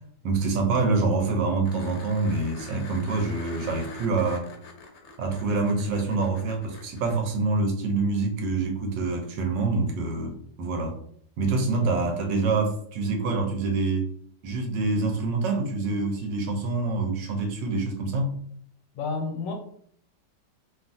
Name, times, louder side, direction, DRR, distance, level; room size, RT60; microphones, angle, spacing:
voice 1, 0.2-4.5 5.2-11.0 11.4-14.1 14.4-18.3, right 3 dB, 85° right, 3 dB, 1.3 m, -26 dB
sound 1, 1.6-7.2 9.9-10.0, left 4 dB, 70° left, 0.9 m, -45 dB
voice 2, 11.7-12.1 18.9-19.5, left 4 dB, 90° left, 4 dB, 1.3 m, -32 dB
2.9 x 2.4 x 2.5 m, 0.63 s
omnidirectional pair, 1.9 m